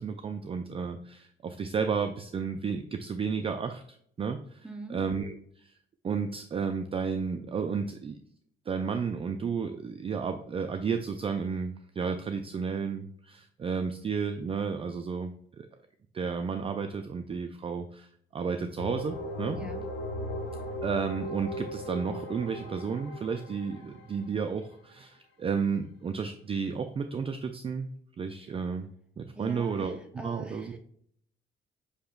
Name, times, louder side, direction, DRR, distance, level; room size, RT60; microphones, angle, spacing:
voice 1, 0.0-3.8 4.2-4.6 4.9-5.7 6.0-8.2 8.7-15.3 15.6-15.7 16.1-19.6 20.8-27.9 28.2-28.9 29.2-30.0 30.2-30.8, right 5 dB, 30° right, 7 dB, 0.3 m, -32 dB
voice 2, 4.6-5.0 19.5-19.8 29.4-30.8, right 1 dB, 5° right, 3 dB, 0.8 m, -42 dB
sound 1, 18.8-24.5, equal, 65° left, 0.9 m, -38 dB
6.4 x 2.9 x 2.3 m, 0.65 s
cardioid pair, 90°, 20 cm